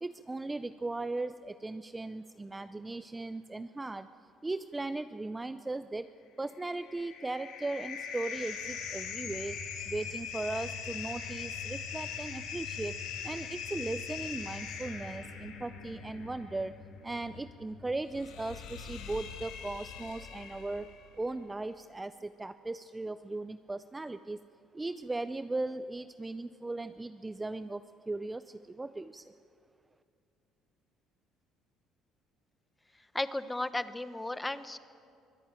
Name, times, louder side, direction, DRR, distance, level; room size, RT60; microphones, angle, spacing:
voice 1, 0.0-13.0 13.2-24.4 24.7-29.3, right 2 dB, 15° right, 12 dB, 0.5 m, -38 dB
sound 1, 6.5-21.1, left 6 dB, 85° left, 3.6 m, -41 dB
voice 2, 33.1-34.8, left 2 dB, 10° left, 12 dB, 1.0 m, -34 dB
24.0 x 16.5 x 9.0 m, 2.4 s
cardioid pair, 105°, 0 cm